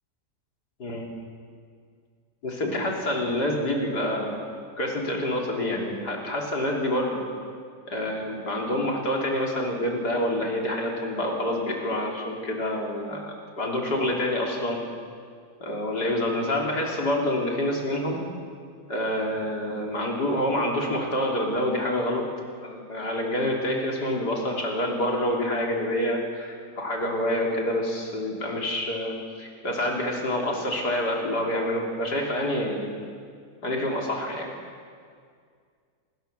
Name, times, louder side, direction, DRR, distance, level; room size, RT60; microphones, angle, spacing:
voice 1, 2.4-4.4 4.8-7.2 7.9-14.8 15.6-18.2 18.9-22.2 22.6-32.9 33.6-34.5, left 1 dB, 75° left, 0 dB, 4.1 m, -27 dB
27.0 x 20.5 x 7.0 m, 2.1 s
omnidirectional pair, 1.8 m